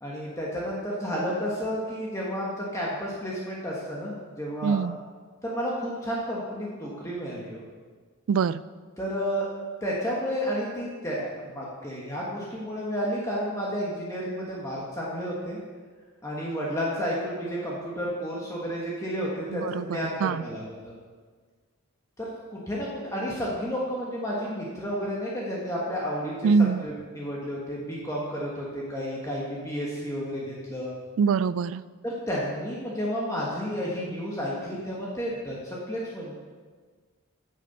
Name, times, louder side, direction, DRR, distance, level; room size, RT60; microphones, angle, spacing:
voice 1, 0.0-4.8 5.4-7.6 9.0-9.5 9.8-15.6 16.2-20.9 22.2-30.9 32.0-36.3, equal, 15° left, -5 dB, 1.3 m, -31 dB
voice 2, 4.6-5.0 8.3-8.6 19.5-20.4 26.4-26.8 31.2-31.8, right 5 dB, 70° right, 18 dB, 0.3 m, -24 dB
9.4 x 6.8 x 5.5 m, 1.5 s
head